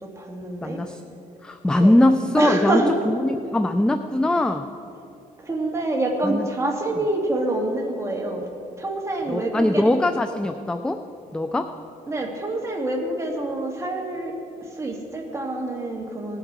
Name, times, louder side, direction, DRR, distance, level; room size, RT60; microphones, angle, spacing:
voice 1, 0.0-0.8 1.7-2.0 2.4-2.9 5.4-8.5 8.8-9.8 12.1-16.4, right 2 dB, 20° right, 1 dB, 1.9 m, -26 dB
voice 2, 0.6-1.0 1.4-4.7 6.2-6.5 9.3-11.0 11.3-11.7, left 1 dB, 5° left, 8 dB, 0.3 m, -21 dB
18.5 x 7.4 x 4.7 m, 2.7 s
cardioid pair, 110°, 15 cm